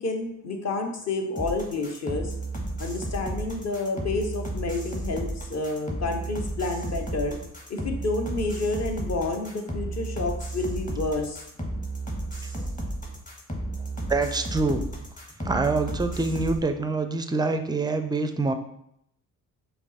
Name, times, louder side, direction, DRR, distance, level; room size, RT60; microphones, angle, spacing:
voice 1, 0.0-2.3 2.8-7.4 7.7-11.4, left 3 dB, 35° left, 4 dB, 1.0 m, -29 dB
sound 1, 1.4-16.6, right 1 dB, 20° left, 1.3 m, -33 dB
voice 2, 14.1-14.9 15.4-18.5, right 3 dB, 10° right, 7 dB, 0.4 m, -26 dB
5.7 x 2.0 x 4.1 m, 0.75 s
hypercardioid pair, 50°, 43 cm